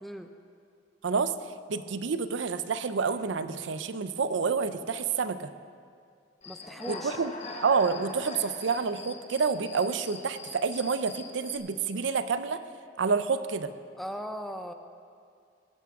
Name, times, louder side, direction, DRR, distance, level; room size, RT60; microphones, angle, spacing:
voice 1, 0.0-0.3 6.4-7.2 14.0-14.7, equal, ahead, 6 dB, 0.5 m, -38 dB
voice 2, 1.7-5.5 6.9-7.3 7.6-12.6 13.0-13.7, right 5 dB, 75° right, 12 dB, 0.5 m, -28 dB
Human voice / Cricket, 6.4-11.6, left 3 dB, 40° left, 1.2 m, -43 dB
16.5 x 12.0 x 3.6 m, 2.2 s
head